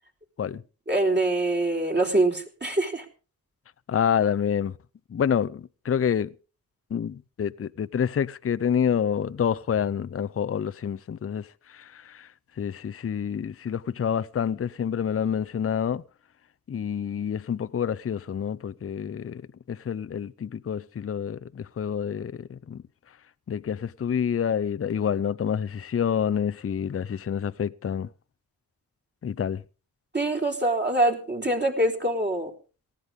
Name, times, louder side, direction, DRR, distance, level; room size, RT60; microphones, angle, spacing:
voice 1, 0.9-3.0 30.1-32.5, right 2 dB, 30° right, 3.7 m, -24 dB
voice 2, 3.9-4.7 5.1-6.3 6.9-11.5 11.7-12.3 12.6-16.0 16.7-19.4 19.7-22.8 23.5-28.1 29.2-29.6, left 8 dB, 40° left, 0.6 m, -28 dB
19.0 x 14.5 x 3.7 m
cardioid pair, 65°, 36 cm